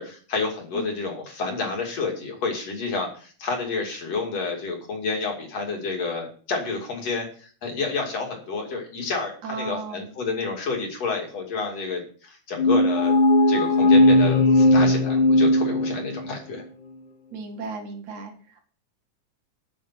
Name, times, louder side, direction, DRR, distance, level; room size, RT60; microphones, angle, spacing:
voice 1, 0.0-13.2 13.5-16.6, left 4 dB, 60° left, 1 dB, 3.8 m, -29 dB
voice 2, 9.4-10.0 17.3-18.6, right 4 dB, 75° right, 3 dB, 3.4 m, -35 dB
sound 1, 12.6-16.3, left 1 dB, 85° left, 2.9 m, -18 dB
9.2 x 8.9 x 5.9 m, 0.42 s
omnidirectional pair, 3.4 m